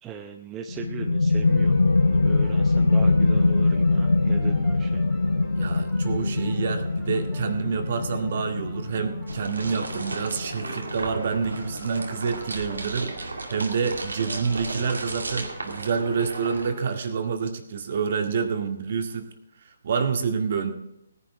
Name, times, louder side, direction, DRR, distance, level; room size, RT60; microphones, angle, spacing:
voice 1, 0.0-1.8 2.0-5.0, right 7 dB, 15° right, 5 dB, 0.7 m, -39 dB
sound 1, 0.7-12.1, left 3 dB, 85° left, 0.6 m, -23 dB
sound 2, 1.4-16.9, left 1 dB, ahead, 2.6 m, -48 dB
voice 2, 5.5-19.3 19.7-20.7, right 5 dB, 50° right, 6 dB, 1.9 m, -28 dB
sound 3, 9.3-16.7, right 3 dB, 80° right, 2.3 m, -35 dB
17.5 x 10.5 x 4.8 m, 0.88 s
figure-of-eight pair, 145°, 0 cm